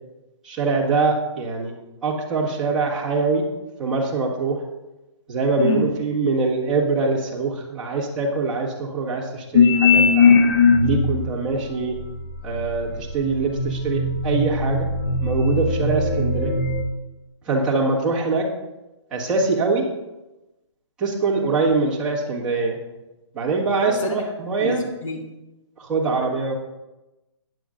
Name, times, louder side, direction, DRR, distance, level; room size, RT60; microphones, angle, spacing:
voice 1, 0.4-1.7 2.0-3.4 3.8-4.6 5.3-10.4 10.8-12.0 12.4-14.9 15.2-16.5 17.5-18.5 19.1-19.9 21.0-22.8 23.3-24.8 25.8-26.5, right 3 dB, 5° right, -10 dB, 1.4 m, -23 dB
voice 2, 5.6-5.9 23.9-24.2 24.6-25.3, left 4 dB, 85° left, 1 dB, 1.7 m, -27 dB
sound 1, 9.5-11.2 11.9-16.8, left 4 dB, 40° left, 0.8 m, -19 dB
16.0 x 9.6 x 2.5 m, 1.0 s
hypercardioid pair, 180°, 16 cm